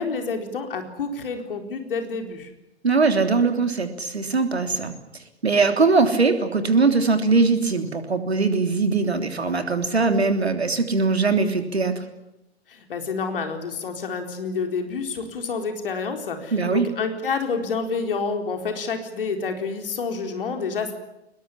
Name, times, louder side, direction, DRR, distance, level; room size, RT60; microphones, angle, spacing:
voice 1, 0.0-2.5 12.7-20.9, left 4 dB, 55° left, 5 dB, 4.2 m, -28 dB
voice 2, 2.8-4.9 5.4-12.0 16.5-16.9, right 4 dB, 75° right, 7 dB, 3.5 m, -21 dB
23.0 x 20.5 x 9.9 m, 0.90 s
figure-of-eight pair, 115°, 32 cm